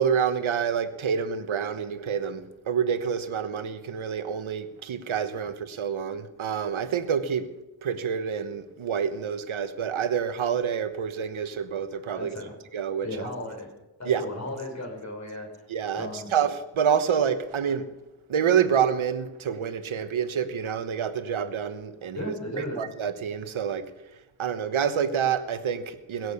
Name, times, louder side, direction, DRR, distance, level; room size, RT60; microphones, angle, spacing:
voice 1, 0.0-7.5 7.8-12.4 12.7-13.1 14.0-14.2 15.7-17.8 18.3-23.9 24.4-26.3, right 7 dB, 85° right, 10 dB, 1.3 m, -27 dB
voice 2, 12.1-12.5 13.0-13.7 14.0-15.5 15.9-16.3 22.1-22.8, left 1 dB, 35° left, 0 dB, 6.1 m, -35 dB
21.5 x 7.9 x 6.7 m, 0.99 s
cardioid pair, 65°, 47 cm